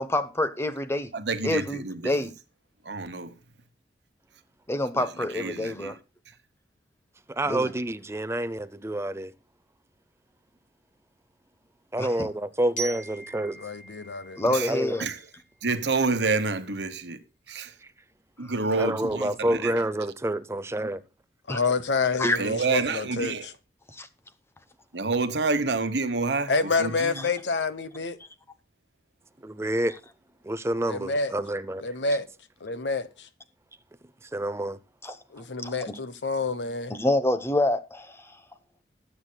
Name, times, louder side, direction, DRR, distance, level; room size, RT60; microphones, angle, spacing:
voice 1, 0.0-1.1 1.4-2.3 4.7-5.9 7.5-7.7 12.0-12.3 14.4-15.1 21.5-21.6 22.2-22.4 23.9-24.1 27.2-27.3 35.0-35.2 35.6-36.0 36.9-38.4, left 1 dB, 15° left, 0.9 m, -27 dB
voice 2, 1.1-2.3 2.8-3.3 4.9-5.1 5.3-5.9 14.4-14.7 15.0-15.2 15.6-17.2 17.5-17.7 18.4-19.8 22.3-23.5 24.9-26.5 26.8-27.3, right 3 dB, 75° right, 1.2 m, -28 dB
voice 3, 7.3-9.3 11.9-13.6 14.7-15.0 18.8-21.0 29.4-29.9 30.4-31.9 34.3-34.8, right 1 dB, 15° right, 0.6 m, -28 dB
Glockenspiel, 12.8-15.6, right 4 dB, 40° left, 5.3 m, -40 dB
voice 4, 13.5-14.4 21.5-23.5 26.5-28.2 30.8-31.3 31.8-32.3 32.6-33.3 35.3-36.9, left 4 dB, 90° left, 1.0 m, -28 dB
19.0 x 8.1 x 2.3 m
head